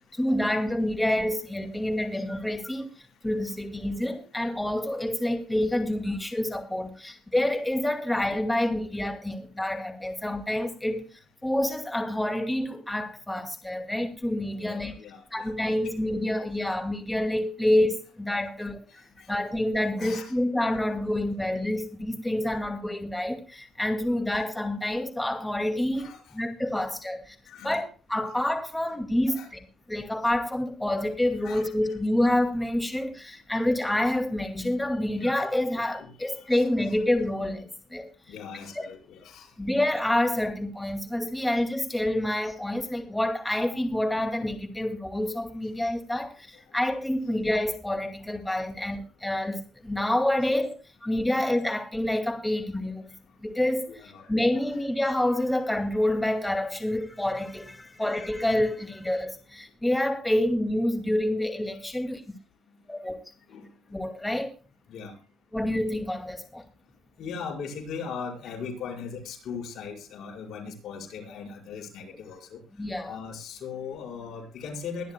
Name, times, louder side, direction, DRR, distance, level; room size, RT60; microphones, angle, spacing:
voice 1, 0.1-2.9 3.2-14.9 15.3-27.4 27.6-29.6 29.9-38.1 38.7-38.9 39.6-53.1 53.4-54.0 54.3-62.2 62.9-63.2 63.9-64.6 65.5-66.6 72.8-73.2, left 1 dB, 10° left, 2.3 m, -28 dB
voice 2, 14.5-16.1 18.9-19.3 20.0-20.3 25.9-26.4 27.5-27.8 29.3-29.5 31.4-31.7 35.1-35.3 36.0-36.9 38.3-39.5 53.9-54.3 63.5-64.0 64.9-65.1 67.2-72.6 73.0-75.1, left 6 dB, 75° left, 5.1 m, -39 dB
22.5 x 11.0 x 2.2 m
cardioid pair, 90°, 0 cm